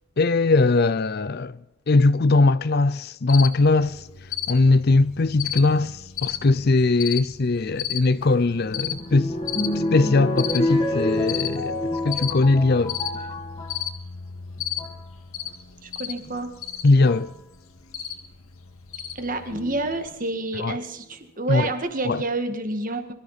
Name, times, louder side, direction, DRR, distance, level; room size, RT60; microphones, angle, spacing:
voice 1, 0.2-1.6 1.9-4.0 4.5-9.3 9.9-11.8 12.0-13.0 16.8-17.3 20.6-20.8 21.5-21.7 22.1-22.2, left 3 dB, 45° left, 0.5 m, -20 dB
Cricket, 3.3-20.1, left 10 dB, 75° left, 1.9 m, -35 dB
sound 1, 8.2-13.8 14.6-15.0 16.3-16.4 17.1-17.4 19.5-20.1 20.8-20.9 21.1-21.2, left 1 dB, 25° left, 2.1 m, -28 dB
voice 2, 15.8-16.5 19.2-23.1, right 2 dB, 35° right, 1.8 m, -29 dB
23.0 x 13.5 x 4.2 m
head